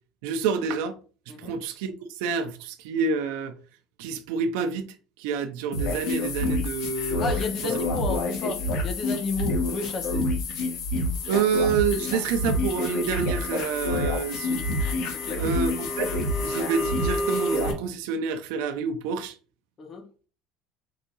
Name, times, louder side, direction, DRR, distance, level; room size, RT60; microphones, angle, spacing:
voice 1, 0.2-1.0 1.4-3.5 4.0-4.9 5.2-7.2 7.6-7.7 11.3-14.6 15.4-16.1 16.4-19.4, right 6 dB, 85° right, 0.6 m, -28 dB
sound 1, 5.7-17.7, left 2 dB, 50° left, 1.4 m, -27 dB
voice 2, 7.2-10.3 15.1-15.4 19.8-20.1, left 4 dB, 30° left, 0.8 m, -32 dB
4.8 x 2.7 x 4.0 m
cardioid pair, 175°, 0 cm